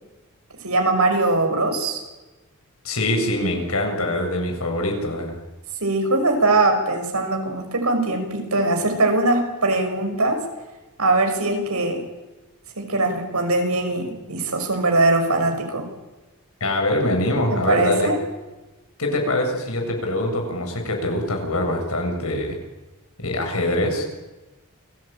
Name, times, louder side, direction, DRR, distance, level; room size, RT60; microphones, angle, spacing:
voice 1, 0.6-2.0 5.8-10.4 11.0-12.0 12.8-15.9 17.5-18.2, right 2 dB, 85° right, 4 dB, 6.2 m, -21 dB
voice 2, 2.8-5.4 16.6-18.1 19.0-22.6 23.2-24.1, left 1 dB, 75° left, 3 dB, 7.6 m, -23 dB
28.5 x 19.5 x 9.1 m, 1.1 s
head